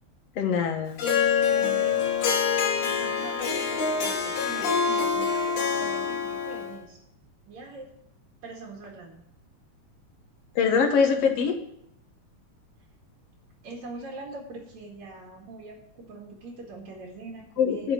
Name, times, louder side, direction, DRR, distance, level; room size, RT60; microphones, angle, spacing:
voice 1, 0.4-1.0 10.6-11.6 17.6-17.9, left 6 dB, 60° left, 3 dB, 2.4 m, -23 dB
Harp, 1.0-6.8, left 6 dB, 85° left, 3.1 m, -25 dB
voice 2, 1.5-2.0 2.8-7.0 7.5-7.9 8.4-9.2 13.6-17.9, right 3 dB, 75° right, -2 dB, 3.3 m, -42 dB
11.0 x 5.8 x 8.7 m, 0.75 s
omnidirectional pair, 3.3 m